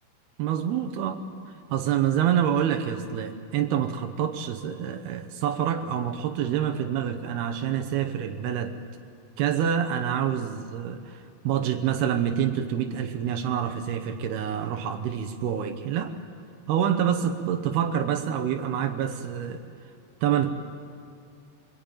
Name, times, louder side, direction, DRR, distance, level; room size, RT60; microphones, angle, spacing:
voice 1, 0.4-1.2 1.7-8.8 9.4-16.1 16.7-19.6 20.2-20.5, right 9 dB, 85° right, 6 dB, 3.0 m, -27 dB
23.5 x 23.0 x 9.0 m, 2.4 s
omnidirectional pair, 4.5 m